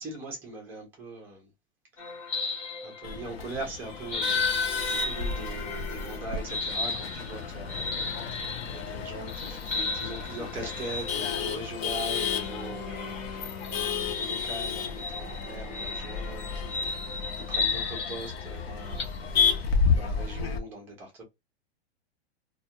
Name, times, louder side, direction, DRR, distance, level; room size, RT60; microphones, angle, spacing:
voice 1, 0.0-1.5 1.9-2.4 2.8-4.5 4.8-21.2, right 2 dB, 5° right, 0.3 m, -41 dB
sound 1, 2.0-3.4 3.8-19.0, left 3 dB, 25° left, 0.7 m, -35 dB
Male speech man speaking / Laughter / Chatter, 3.0-20.6, left 6 dB, 65° left, 0.7 m, -32 dB
Bowed string instrument, 12.1-17.0, left 5 dB, 90° left, 0.9 m, -44 dB
2.3 x 2.1 x 2.7 m
hypercardioid pair, 155°, 33 cm